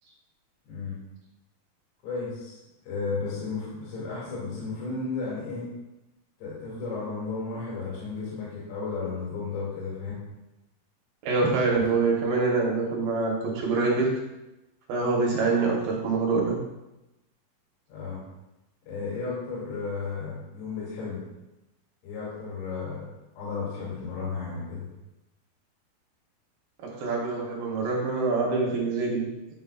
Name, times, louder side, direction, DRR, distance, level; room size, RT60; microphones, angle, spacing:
voice 1, 0.7-1.0 2.0-2.6 2.9-5.7 6.4-10.1 17.9-18.2 18.9-21.2 22.0-23.0 23.4-24.9, left 4 dB, 70° left, -7 dB, 4.1 m, -33 dB
voice 2, 11.2-14.1 14.9-16.6 27.0-29.3, right 3 dB, 70° right, -2 dB, 2.5 m, -25 dB
9.9 x 5.5 x 2.3 m, 0.97 s
omnidirectional pair, 5.0 m